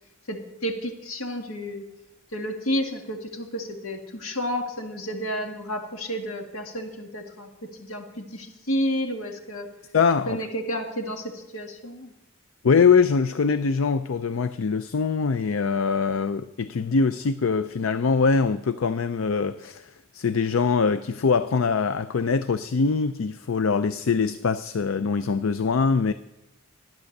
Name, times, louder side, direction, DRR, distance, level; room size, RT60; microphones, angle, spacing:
voice 1, 0.3-1.8 2.3-7.5 7.8-9.7 10.3-12.1, equal, 90° left, 1.9 m, -31 dB
voice 2, 9.9-10.4 12.6-26.1, left 5 dB, 75° left, 0.5 m, -23 dB
14.0 x 10.5 x 6.6 m
head